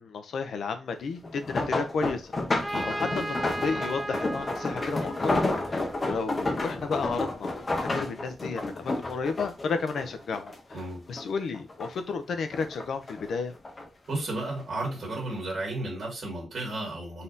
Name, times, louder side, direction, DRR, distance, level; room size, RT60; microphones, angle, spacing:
voice 1, 0.0-2.3 2.6-5.3 5.7-13.5, left 5 dB, 65° left, 8 dB, 0.6 m, -32 dB
sound 1, 1.2-10.8 11.2-12.1 12.5-13.8 14.6-14.9 15.3-15.4, left 2 dB, 25° left, 0.7 m, -31 dB
Trumpet, 2.6-6.3, right 1 dB, 5° right, 0.4 m, -36 dB
voice 2, 10.7-11.0 14.1-17.2, right 2 dB, 40° right, -3 dB, 1.7 m, -33 dB
4.1 x 2.8 x 3.7 m, 0.28 s
wide cardioid pair, 170°, 0 cm